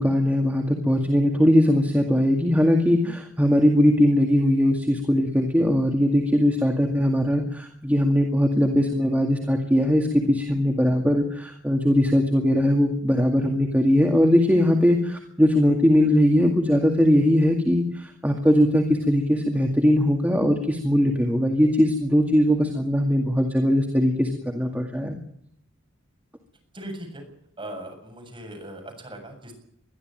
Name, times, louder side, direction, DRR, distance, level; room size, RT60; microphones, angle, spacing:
voice 1, 0.0-25.2, equal, 10° right, 2 dB, 2.1 m, -20 dB
voice 2, 26.7-27.2 27.6-29.5, right 1 dB, 25° right, 3 dB, 7.3 m, -38 dB
22.0 x 14.0 x 9.1 m, 0.71 s
head